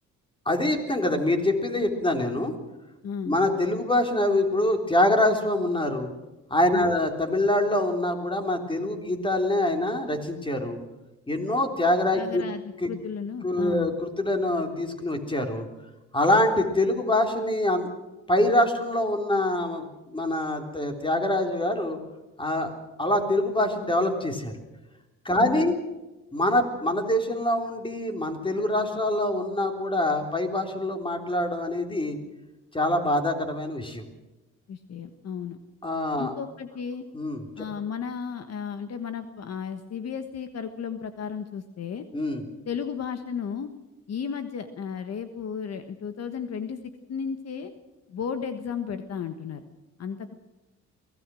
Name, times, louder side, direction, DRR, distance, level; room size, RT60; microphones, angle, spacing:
voice 1, 0.5-2.5 3.3-6.1 6.5-10.8 11.3-12.4 12.8-12.9 13.4-15.7 16.1-17.9 18.3-22.0 22.4-22.7 23.0-24.5 25.2-25.8 26.3-32.2 32.7-34.0 35.8-36.3 37.1-37.7 42.1-42.4, left 1 dB, 15° left, 4 dB, 3.7 m, -25 dB
voice 2, 3.0-3.3 6.7-7.0 12.1-14.0 25.3-25.7 34.7-35.6 36.2-37.0 37.6-42.0 42.7-43.7 44.1-46.8 47.1-47.7 48.1-49.6 50.0-50.3, left 7 dB, 55° left, 9 dB, 1.5 m, -34 dB
23.0 x 17.5 x 6.3 m, 1.1 s
cardioid pair, 90°, 30 cm